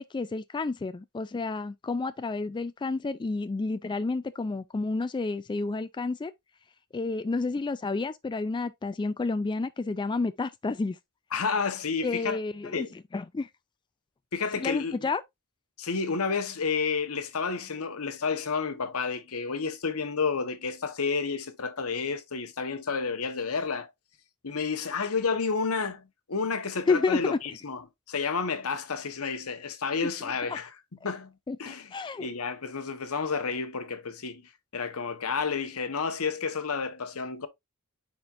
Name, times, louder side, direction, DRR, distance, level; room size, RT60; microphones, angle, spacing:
voice 1, 0.0-6.3 6.9-11.0 12.0-13.5 14.6-15.2 26.9-27.4 30.3-30.6 31.0-31.1 31.5-32.3, left 3 dB, 20° left, 0.3 m, -30 dB
voice 2, 11.3-12.4 12.6-12.9 14.3-15.1 15.8-23.9 24.4-26.0 26.3-30.7 31.0-31.3 31.6-31.9 32.2-37.5, left 5 dB, 75° left, 1.1 m, -30 dB
9.4 x 4.3 x 2.5 m
head